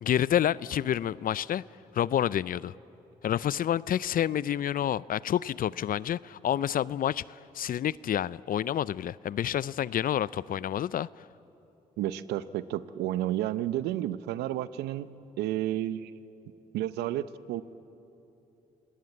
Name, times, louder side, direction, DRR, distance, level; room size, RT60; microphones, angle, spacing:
voice 1, 0.0-1.6 1.9-2.7 3.2-11.1, left 10 dB, 60° left, 21 dB, 0.5 m, -28 dB
voice 2, 12.0-15.1 15.4-16.1 16.7-17.6, right 13 dB, 85° right, 15 dB, 0.7 m, -31 dB
28.0 x 18.0 x 8.4 m, 2.9 s
supercardioid pair, 50°, 17 cm